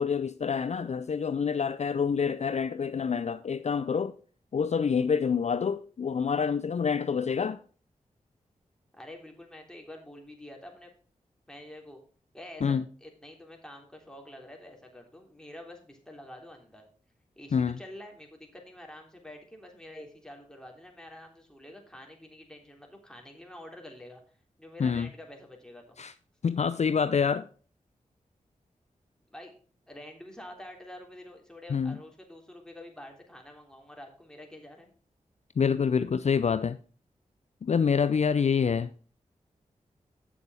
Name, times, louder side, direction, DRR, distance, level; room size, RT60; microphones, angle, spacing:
voice 1, 0.0-4.2 4.5-7.6 12.6-12.8 17.5-17.8 24.8-25.1 26.0-26.1 26.4-27.5 31.7-32.0 35.6-36.8 37.6-38.9, left 6 dB, 55° left, 0.5 m, -27 dB
voice 2, 8.9-10.9 11.5-12.0 12.3-16.8 17.4-24.2 24.6-26.0 29.3-29.5 29.9-34.9, left 1 dB, 5° left, 3.3 m, -47 dB
8.4 x 7.0 x 4.8 m
cardioid pair, 45°, 14 cm